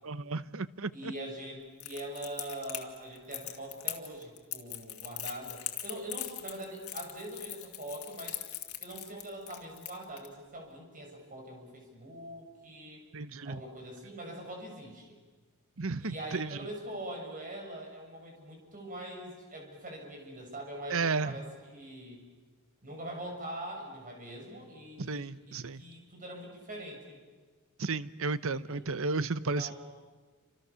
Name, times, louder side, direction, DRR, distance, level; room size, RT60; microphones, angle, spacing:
voice 1, 0.0-1.1 13.1-13.6 15.8-16.6 20.9-21.3 25.0-25.8 27.8-29.7, right 3 dB, 65° right, 15 dB, 0.9 m, -33 dB
voice 2, 0.9-8.4 8.8-13.0 13.4-15.1 16.0-22.2 22.8-27.2 28.7-28.8 29.6-29.7, right 1 dB, 40° right, 1 dB, 7.0 m, -43 dB
Crackle, 1.8-10.3, left 14 dB, 80° left, 2.5 m, -40 dB
29.5 x 26.5 x 7.1 m, 1.4 s
head